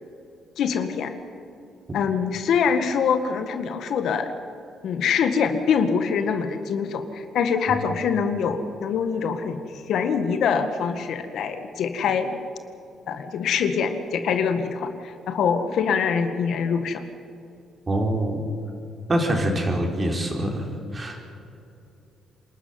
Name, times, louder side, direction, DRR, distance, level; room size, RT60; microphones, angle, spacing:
voice 1, 0.6-1.1 1.9-4.3 4.8-12.3 13.1-17.0, left 6 dB, 75° left, 8 dB, 1.8 m, -24 dB
voice 2, 17.9-18.4 19.1-21.2, right 1 dB, 30° right, 2 dB, 4.8 m, -25 dB
27.0 x 13.0 x 9.6 m, 2.7 s
cardioid pair, 90°, 0 cm